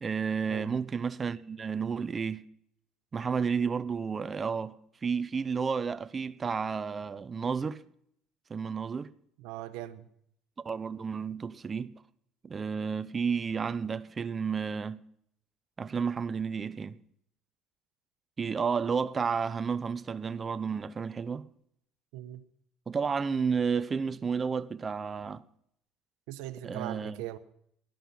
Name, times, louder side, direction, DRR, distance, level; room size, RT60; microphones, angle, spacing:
voice 1, 0.0-2.4 3.1-4.8 5.0-7.8 8.5-9.1 10.6-11.9 12.4-15.0 15.8-17.0 18.4-21.5 22.9-25.4 26.6-27.2, right 6 dB, 25° right, 0.7 m, -31 dB
voice 2, 9.4-10.0 22.1-22.4 26.3-27.4, right 14 dB, 85° right, 1.2 m, -40 dB
17.5 x 11.0 x 5.9 m
cardioid pair, 125°, 0 cm